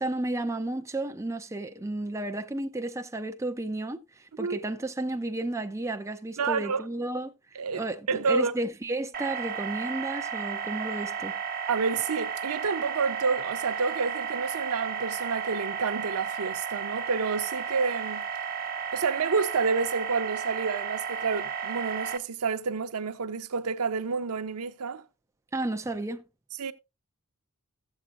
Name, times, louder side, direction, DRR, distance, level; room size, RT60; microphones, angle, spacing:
voice 1, 0.0-11.3 25.5-26.2, right 2 dB, 15° right, 0.5 m, -32 dB
voice 2, 6.4-6.9 7.6-8.5 11.7-18.2 18.9-25.0 26.6-26.7, right 5 dB, 75° right, 0.7 m, -29 dB
sound 1, 9.1-22.2, right 7 dB, 40° right, 1.0 m, -33 dB
15.0 x 7.3 x 2.5 m
head